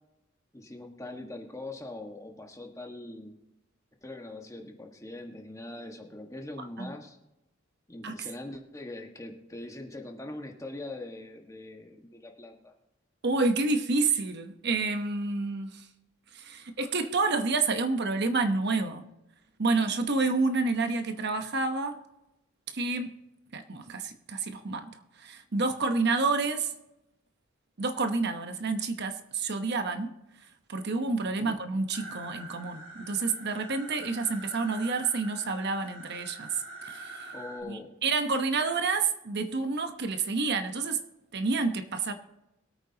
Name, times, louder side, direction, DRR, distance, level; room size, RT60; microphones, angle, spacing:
voice 1, 0.5-3.3 4.0-7.2 7.9-12.7 31.2-31.6 37.3-37.9, left 2 dB, 15° left, 2 dB, 1.5 m, -42 dB
voice 2, 13.2-15.9 16.3-19.0 19.6-22.0 22.7-23.2 23.5-26.7 27.8-30.1 30.7-36.5 36.8-37.3 37.7-41.0 41.3-42.1, right 3 dB, 55° right, 8 dB, 1.0 m, -29 dB
sound 1, 31.9-37.6, right 2 dB, 80° right, 2.9 m, -45 dB
23.0 x 8.8 x 2.9 m, 0.92 s
head